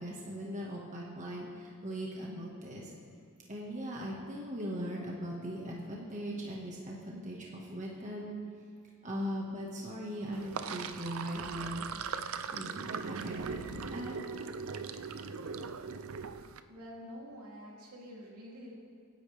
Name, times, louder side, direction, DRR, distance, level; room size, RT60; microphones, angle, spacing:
voice 1, 0.0-2.9 3.5-8.4 9.0-11.9 12.5-14.1, equal, 35° right, -3 dB, 1.7 m, -39 dB
Sink (filling or washing), 10.3-16.6, right 5 dB, 65° right, 0.6 m, -39 dB
voice 2, 16.7-18.7, equal, 80° right, -3 dB, 3.2 m, -47 dB
25.0 x 10.5 x 3.5 m, 2.3 s
head